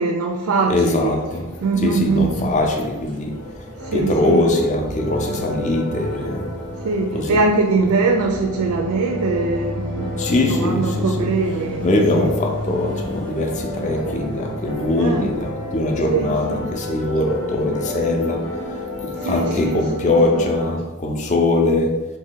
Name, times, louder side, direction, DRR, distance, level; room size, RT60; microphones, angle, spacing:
voice 1, 0.0-1.1 1.6-2.5 3.8-4.4 6.8-11.9 12.1-12.2 15.0-15.3 16.1-16.6 19.2-20.1, right 4 dB, 90° right, 0.4 m, -22 dB
voice 2, 0.7-1.5 1.8-3.4 3.9-6.5 7.1-7.4 10.2-11.3 11.8-18.6 19.0-22.0, left 2 dB, 35° left, 0.4 m, -21 dB
sound 1, 1.0-20.7, left 1 dB, 5° left, 0.8 m, -34 dB
sound 2, 3.3-20.7, left 1 dB, 85° left, 0.8 m, -32 dB
2.9 x 2.7 x 3.7 m
head